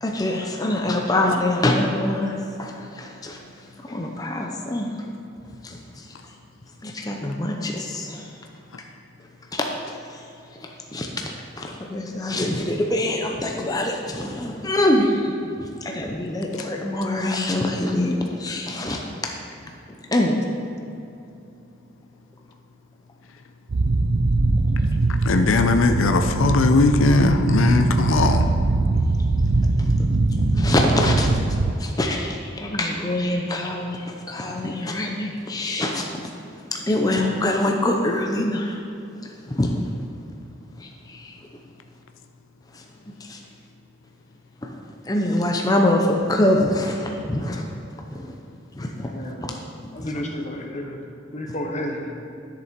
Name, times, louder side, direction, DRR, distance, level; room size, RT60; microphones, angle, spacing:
voice 1, 0.0-3.4 3.8-4.9 5.6-6.1 6.8-8.3 9.5-10.2 10.9-11.3 11.6-19.3 20.1-20.5 30.5-36.1 36.7-38.8 39.2-39.8 40.8-41.4 42.7-42.8 43.2-43.4 44.6-44.7 45.0-47.6 48.1-48.3 48.7-49.3, left 1 dB, 20° left, 1 dB, 0.6 m, -24 dB
sound 1, 23.7-31.7, right 2 dB, 70° right, 0.5 m, -21 dB
voice 2, 25.2-28.5, left 3 dB, 85° left, 6 dB, 0.5 m, -19 dB
voice 3, 48.9-49.6 49.9-51.0 51.3-52.1, left 1 dB, 35° left, 1 dB, 1.1 m, -31 dB
11.0 x 6.9 x 4.4 m, 2.8 s
head